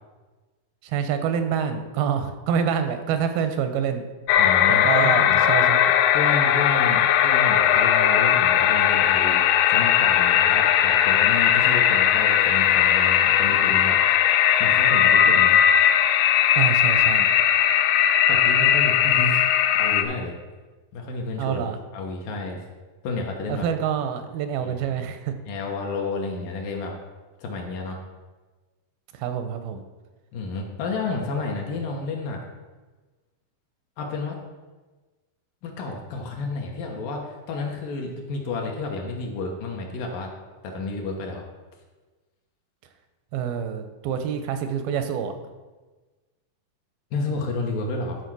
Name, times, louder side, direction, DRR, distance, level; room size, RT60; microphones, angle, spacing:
voice 1, 0.8-4.1 4.7-5.9 16.6-17.3 21.4-21.8 23.5-25.3 29.1-29.8 43.3-45.3, right 8 dB, 80° right, 8 dB, 2.6 m, -26 dB
sound 1, 4.3-20.0, left 10 dB, 85° left, 1.8 m, -18 dB
voice 2, 4.4-5.4 6.1-9.4 9.7-14.0 14.4-15.5 18.3-19.4 19.8-20.3 20.9-21.6 21.9-22.6 23.0-23.7 24.6-24.9 25.5-26.9 27.4-28.0 30.3-32.4 34.0-34.4 35.6-40.3 40.6-41.4 47.1-48.2, left 3 dB, 70° left, 0 dB, 2.7 m, -30 dB
12.0 x 4.4 x 6.1 m, 1.3 s
omnidirectional pair, 4.2 m